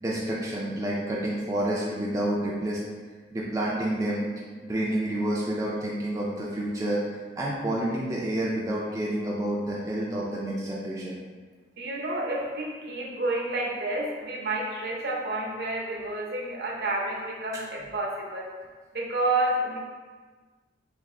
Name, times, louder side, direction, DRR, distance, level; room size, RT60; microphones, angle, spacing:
voice 1, 0.0-2.8 3.3-4.3 4.6-7.0 7.4-11.2 17.5-17.6, right 1 dB, 20° right, -5 dB, 0.4 m, -29 dB
voice 2, 11.8-18.5 18.9-19.8, right 2 dB, 60° right, -2 dB, 0.7 m, -29 dB
3.4 x 2.4 x 3.6 m, 1.4 s
head